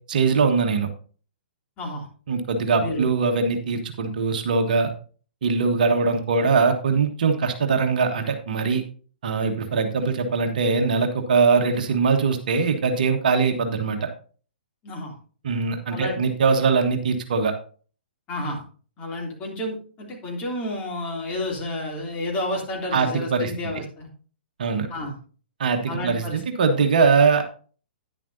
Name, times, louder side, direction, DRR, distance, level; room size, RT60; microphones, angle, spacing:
voice 1, 0.1-0.9 2.3-4.9 5.4-8.8 9.2-14.1 15.4-17.5 22.9-23.5 24.6-24.9 25.6-27.5, right 4 dB, 50° right, 5 dB, 1.4 m, -21 dB
voice 2, 1.8-2.1 2.8-3.1 9.7-9.8 14.8-15.1 15.9-16.2 18.3-18.6 19.0-24.1 24.9-25.2 25.9-26.4, left 1 dB, 25° left, -1 dB, 3.0 m, -31 dB
10.5 x 10.0 x 2.7 m, 0.40 s
figure-of-eight pair, 120°, 6 cm